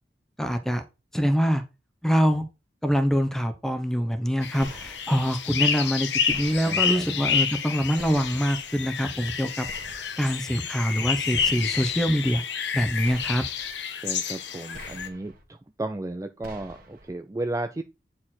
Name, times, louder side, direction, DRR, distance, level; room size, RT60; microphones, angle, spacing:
voice 1, 0.4-0.8 1.1-1.6 2.0-2.5 2.8-9.7 10.2-12.4 12.7-13.4, equal, 5° left, 0.9 m, -24 dB
sound 1, 4.4-15.1, left 7 dB, 80° left, 1.0 m, -29 dB
sound 2, 4.6-5.3 6.3-7.0 8.0-8.7 9.7-10.4 11.3-12.0 13.0-13.7 14.7-15.4 16.4-17.1, right 1 dB, 55° right, 1.7 m, -46 dB
voice 2, 6.6-7.1 14.0-17.8, right 2 dB, 20° right, 0.4 m, -34 dB
9.5 x 4.4 x 4.3 m
head